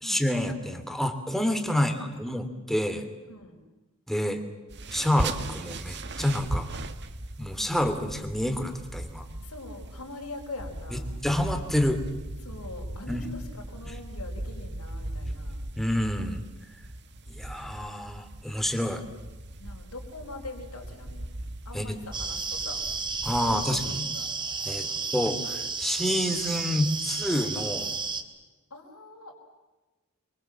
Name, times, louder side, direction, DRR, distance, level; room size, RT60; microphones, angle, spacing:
voice 1, 0.0-3.1 4.1-4.4 4.9-6.7 7.4-9.2 10.9-12.0 13.1-13.3 13.8-13.9 15.8-16.4 17.3-19.0 21.7-22.0 23.2-24.1 24.6-24.9 25.1-27.9, left 1 dB, ahead, 7 dB, 2.9 m, -28 dB
voice 2, 1.7-2.2 3.3-3.6 9.4-11.1 12.4-15.6 19.6-21.3 21.6-22.8 23.4-23.8 24.1-24.3 24.9-25.1 28.7-29.3, left 2 dB, 75° left, 2 dB, 5.0 m, -43 dB
sound 1, 4.7-23.9, right 1 dB, 50° right, 1.7 m, -38 dB
sound 2, 22.1-28.2, right 4 dB, 20° right, 2.4 m, -32 dB
29.0 x 24.0 x 7.5 m, 1.2 s
head